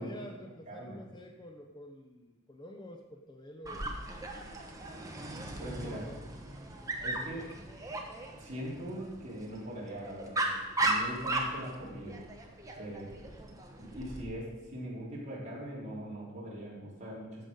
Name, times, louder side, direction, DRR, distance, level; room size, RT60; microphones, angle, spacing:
voice 1, 0.0-3.9 5.6-6.2 7.2-7.4, left 1 dB, 20° left, 3 dB, 0.8 m, -49 dB
voice 2, 0.7-1.0 5.4-6.1 7.0-7.5 8.4-10.4 10.8-12.2 12.8-13.2 13.8-17.4, equal, 35° right, -6 dB, 3.6 m, -41 dB
Dog, 3.6-14.2, right 2 dB, 15° right, 1.1 m, -37 dB
14.0 x 6.1 x 5.2 m, 1.2 s
head